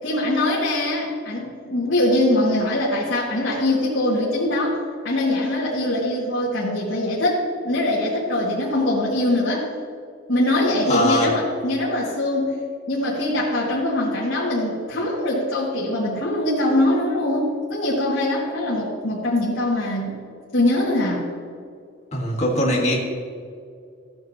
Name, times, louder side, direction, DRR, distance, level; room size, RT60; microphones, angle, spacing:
voice 1, 0.0-9.7 10.3-12.5 12.9-20.2 20.5-21.3, left 1 dB, 75° left, -7 dB, 2.1 m, -22 dB
voice 2, 10.9-11.4 22.1-23.0, left 1 dB, 35° left, -2 dB, 1.7 m, -21 dB
15.0 x 8.9 x 2.9 m, 2.3 s
head